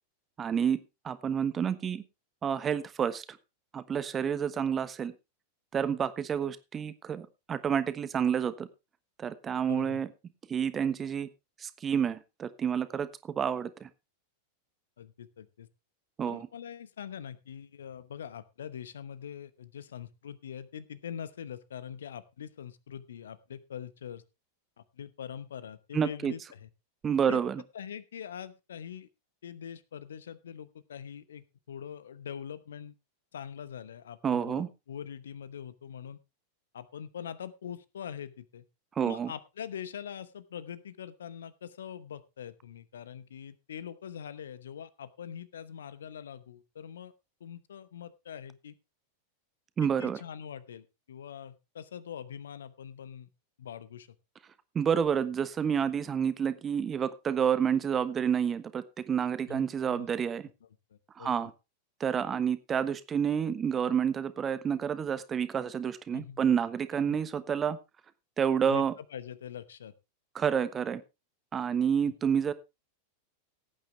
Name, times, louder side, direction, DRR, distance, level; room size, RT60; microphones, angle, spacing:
voice 1, 0.4-0.8 1.0-2.0 2.4-3.4 3.7-5.1 5.7-8.7 9.2-10.1 10.5-11.3 11.6-13.9 16.2-16.5 25.9-26.3 27.0-27.6 34.2-34.7 39.0-39.3 49.8-50.2 54.7-60.5 61.2-61.5 62.0-67.8 68.4-68.9 70.3-71.0 71.5-72.5, right 7 dB, 20° right, 13 dB, 1.1 m, -29 dB
voice 2, 9.7-10.0 15.0-15.7 16.2-24.2 24.8-26.7 27.2-27.4 27.7-29.1 29.4-32.9 33.3-36.2 36.7-38.7 39.0-47.1 47.4-48.7 49.8-53.3 53.6-54.1 59.5-60.1 60.4-61.5 66.1-66.4 67.1-67.2 68.6-69.9, left 8 dB, 65° left, 17 dB, 1.0 m, -43 dB
17.0 x 9.0 x 3.3 m, 0.26 s
figure-of-eight pair, 90°, 0 cm